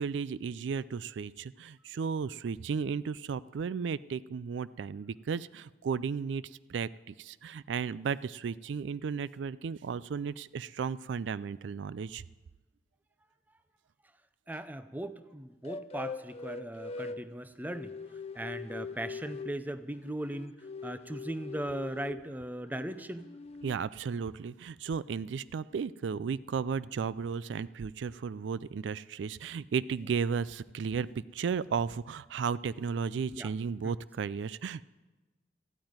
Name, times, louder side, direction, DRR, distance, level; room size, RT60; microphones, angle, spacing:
voice 1, 0.0-12.2 23.6-31.1 31.3-34.8, right 6 dB, 90° right, 18 dB, 0.4 m, -34 dB
voice 2, 14.5-17.9 18.3-20.5 20.8-23.3 33.3-33.5 33.8-33.9, right 1 dB, 10° right, 12 dB, 0.6 m, -38 dB
sound 1, 15.6-17.3 17.7-19.6 20.0-22.3 22.7-23.8, left 4 dB, 35° left, 0.5 m, -42 dB
14.0 x 8.8 x 9.5 m, 1.2 s
head